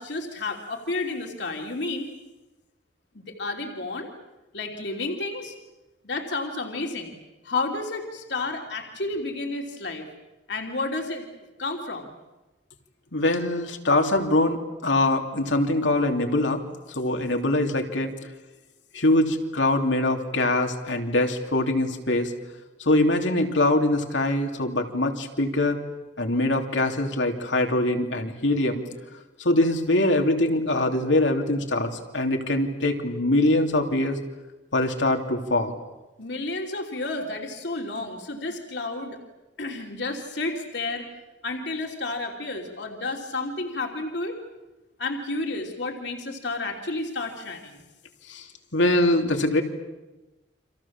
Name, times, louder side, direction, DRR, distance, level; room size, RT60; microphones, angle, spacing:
voice 1, 0.0-2.1 3.1-4.1 4.5-5.5 6.0-7.2 7.4-10.0 10.5-11.3 11.6-12.1 36.2-39.2 39.6-41.1 41.4-44.4 45.0-47.8, left 2 dB, 65° left, 2 dB, 3.1 m, -31 dB
voice 2, 13.1-18.1 18.9-22.3 22.8-25.8 26.2-28.8 29.4-34.2 34.7-35.8 48.3-48.5 48.7-49.6, left 1 dB, 85° left, 3 dB, 3.1 m, -23 dB
30.0 x 26.0 x 7.4 m, 1.1 s
head